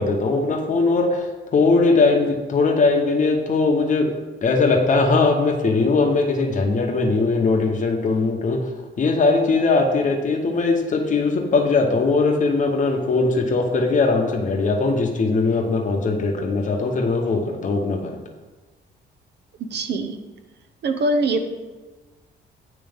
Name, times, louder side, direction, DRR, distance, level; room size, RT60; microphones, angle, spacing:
voice 1, 0.0-4.1 4.4-8.6 9.0-18.1, left 3 dB, 40° left, 2 dB, 0.9 m, -20 dB
voice 2, 19.7-20.2 20.8-21.4, right 2 dB, 60° right, 7 dB, 0.7 m, -22 dB
8.8 x 3.0 x 3.5 m, 1.2 s
cardioid pair, 90°, 20 cm